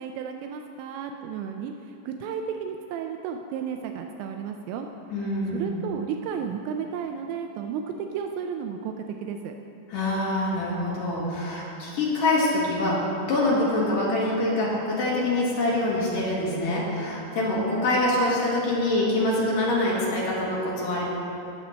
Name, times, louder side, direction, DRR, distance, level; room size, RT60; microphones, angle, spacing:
voice 1, 0.0-4.9 5.5-9.5, right 7 dB, 85° right, 4 dB, 2.8 m, -33 dB
voice 2, 5.1-5.7 9.9-21.0, left 1 dB, 50° left, -6 dB, 3.6 m, -25 dB
18.0 x 7.3 x 4.4 m, 2.8 s
omnidirectional pair, 5.3 m